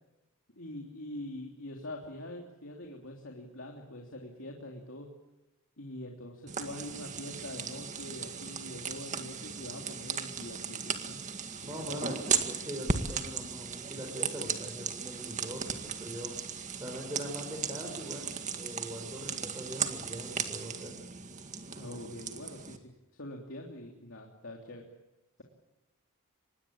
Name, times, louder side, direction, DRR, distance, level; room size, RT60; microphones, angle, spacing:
voice 1, 0.5-5.1 5.8-11.2 11.6-12.1 21.8-22.8 23.1-24.8, left 1 dB, 60° left, 0 dB, 3.2 m, -44 dB
sound 1, 6.5-22.8, right 6 dB, 35° right, 1.9 m, -36 dB
voice 2, 11.6-16.3 16.8-20.9, equal, 15° right, 0 dB, 5.1 m, -42 dB
25.5 x 21.0 x 8.8 m, 0.97 s
head